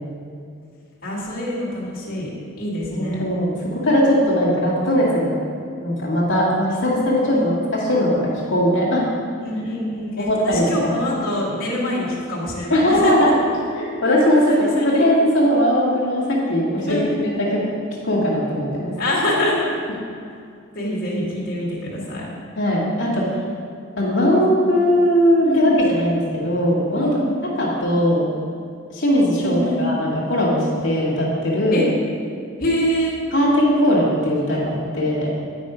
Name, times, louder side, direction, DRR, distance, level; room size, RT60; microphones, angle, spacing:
voice 1, 1.0-2.3 2.6-3.2 7.3-7.5 9.4-13.1 14.4-15.1 16.9-17.3 19.0-19.6 20.7-22.3 25.4-25.7 27.0-27.3 29.4-30.0 31.7-31.8 32.6-33.2, left 1 dB, 45° left, -7 dB, 2.0 m, -25 dB
voice 2, 2.9-5.4 5.8-9.1 10.2-10.6 12.7-13.3 13.8-17.6 18.0-18.9 22.6-23.2 24.0-27.1 27.6-28.3 28.9-31.9 33.3-35.3, equal, 65° left, -6 dB, 2.0 m, -19 dB
9.8 x 5.3 x 5.1 m, 2.4 s
head